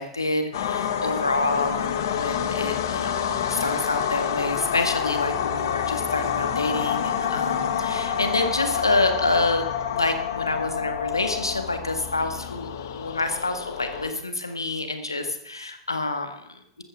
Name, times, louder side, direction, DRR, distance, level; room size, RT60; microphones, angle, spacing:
voice 1, 0.0-16.8, left 2 dB, 85° left, 7 dB, 1.7 m, -27 dB
sound 1, 0.5-14.1, left 8 dB, 60° left, 1.3 m, -28 dB
14.5 x 13.5 x 3.6 m, 0.76 s
figure-of-eight pair, 90°, 2 cm